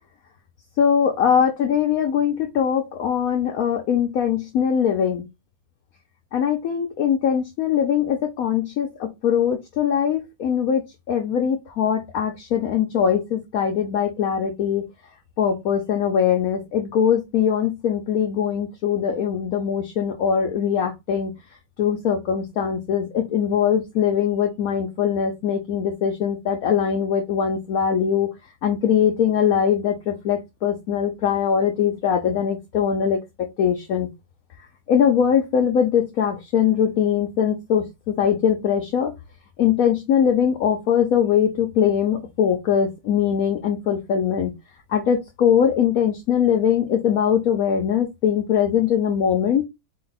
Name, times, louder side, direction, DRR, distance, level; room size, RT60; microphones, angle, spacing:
voice 1, 0.8-5.3 6.3-14.8 15.4-21.3 21.8-28.3 28.6-33.2 33.6-34.1 34.9-39.1 39.6-44.5 44.9-49.6, left 8 dB, 65° left, 2 dB, 0.9 m, -21 dB
4.6 x 2.2 x 3.9 m, 0.21 s
omnidirectional pair, 2.2 m